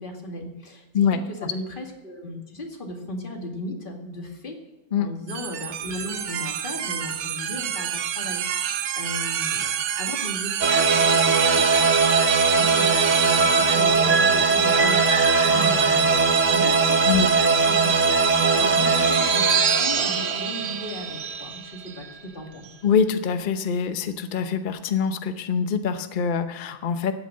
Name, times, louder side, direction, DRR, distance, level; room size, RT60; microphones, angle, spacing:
voice 1, 0.0-4.6 5.0-17.9 18.2-22.6, left 1 dB, 25° left, 1 dB, 2.2 m, -36 dB
voice 2, 0.9-1.5 4.9-5.1 17.0-17.3 22.8-27.1, left 7 dB, 70° left, 9 dB, 0.4 m, -24 dB
sound 1, 5.3-19.9, right 9 dB, 70° right, 1.4 m, -30 dB
sound 2, 10.6-22.0, right 4 dB, 50° right, 1.0 m, -20 dB
sound 3, 13.7-16.9 18.5-20.5, right 1 dB, 30° right, 3.3 m, -34 dB
14.0 x 9.2 x 7.8 m, 1.1 s
omnidirectional pair, 2.1 m